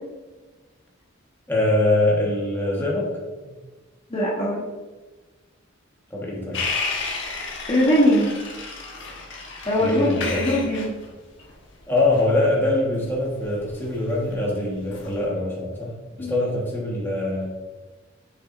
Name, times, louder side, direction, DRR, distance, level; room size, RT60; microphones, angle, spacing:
voice 1, 1.5-3.1 3.4-3.5 6.1-6.6 9.8-10.5 11.9-17.5, left 2 dB, 10° left, -4 dB, 1.4 m, -23 dB
voice 2, 4.1-4.6 7.7-8.3 9.6-11.0 16.2-16.5, equal, 30° left, -6 dB, 1.1 m, -21 dB
sound 1, 6.5-14.3 14.8-15.2, left 4 dB, 65° left, 1.2 m, -32 dB
6.8 x 5.9 x 2.6 m, 1.3 s
head